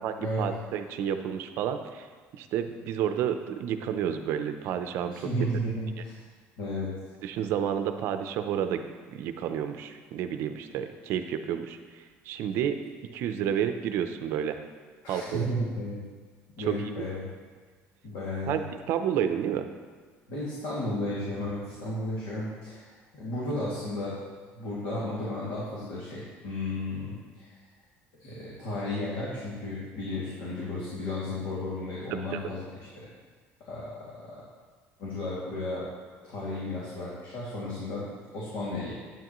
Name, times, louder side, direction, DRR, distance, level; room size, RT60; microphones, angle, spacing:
voice 1, 0.0-2.1 2.4-5.3 7.2-8.8 9.1-12.8 13.1-14.6 15.1-15.5 16.7-16.8 18.5-18.6 18.9-19.7 32.1-32.2, right 9 dB, 60° right, 8 dB, 0.6 m, -30 dB
voice 2, 5.1-6.1 6.6-6.9 15.0-16.0 16.6-17.2 18.0-18.6 20.3-24.2 24.5-27.5 28.2-33.1 33.6-34.4 35.0-35.9 36.2-38.9, left 1 dB, 70° left, -8 dB, 2.4 m, -33 dB
10.5 x 9.0 x 3.1 m, 1.5 s
cardioid pair, 170°, 5 cm